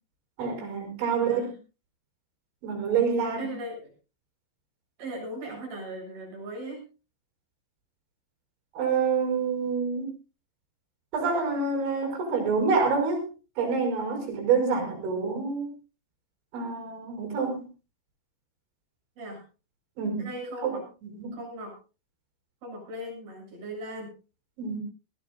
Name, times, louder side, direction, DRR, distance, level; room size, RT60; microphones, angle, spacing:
voice 1, 0.4-1.5 2.6-3.5 8.8-10.1 11.1-13.2 13.6-15.7 16.5-17.6 20.0-20.3 20.6-20.7 21.0-21.4 24.6-24.8, right 5 dB, 85° right, 1 dB, 7.5 m, -27 dB
voice 2, 1.1-1.5 3.4-3.9 5.0-6.8 19.2-19.4 20.2-20.8 21.3-21.8 22.6-24.1, right 1 dB, 55° right, 0 dB, 9.5 m, -38 dB
20.5 x 17.5 x 2.6 m, 0.33 s
omnidirectional pair, 5.2 m